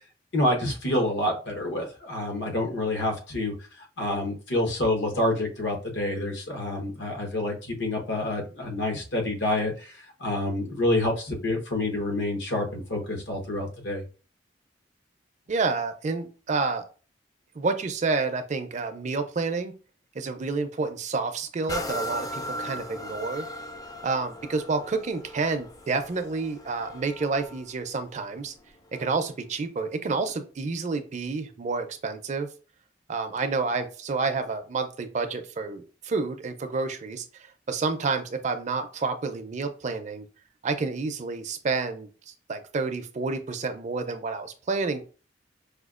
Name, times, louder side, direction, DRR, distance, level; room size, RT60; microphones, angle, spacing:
voice 1, 0.3-3.5 4.0-14.0, left 1 dB, 70° left, 1 dB, 1.0 m, -28 dB
voice 2, 15.5-16.8 17.6-19.7 20.1-23.5 24.0-28.5 28.9-32.5 33.1-40.2 40.6-45.0, right 4 dB, 40° right, 8 dB, 0.4 m, -29 dB
sound 1, 21.7-29.3 29.9-30.0, left 1 dB, 20° left, 0.4 m, -38 dB
4.9 x 2.3 x 2.4 m, 0.36 s
head